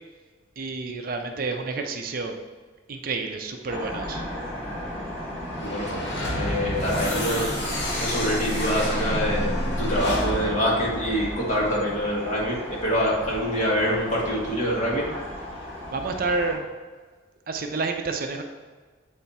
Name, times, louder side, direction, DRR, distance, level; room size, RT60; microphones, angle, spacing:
voice 1, 0.6-2.4 2.9-4.2 15.9-16.7 17.5-18.4, right 3 dB, 50° right, 4 dB, 0.5 m, -29 dB
sound 1, 3.7-16.6, equal, 10° left, 1.6 m, -35 dB
sound 2, 5.5-11.8, left 1 dB, 70° left, 1.5 m, -29 dB
voice 2, 5.6-9.5 9.8-15.1, equal, 40° left, -5 dB, 1.7 m, -25 dB
7.9 x 3.5 x 4.1 m, 1.4 s
head